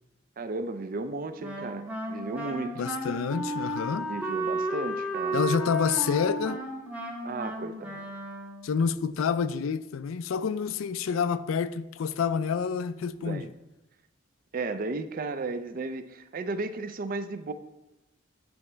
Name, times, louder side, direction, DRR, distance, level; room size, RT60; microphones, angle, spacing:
voice 1, 0.4-2.8 4.0-5.4 7.2-8.1 13.2-13.5 14.5-17.5, right 3 dB, 45° right, 0.4 m, -34 dB
Wind instrument woodwind instrument, 1.4-8.7, right 1 dB, 5° right, 0.8 m, -33 dB
voice 2, 2.8-4.1 5.3-6.6 8.6-13.5, left 6 dB, 85° left, 0.4 m, -28 dB
8.6 x 4.1 x 4.4 m
head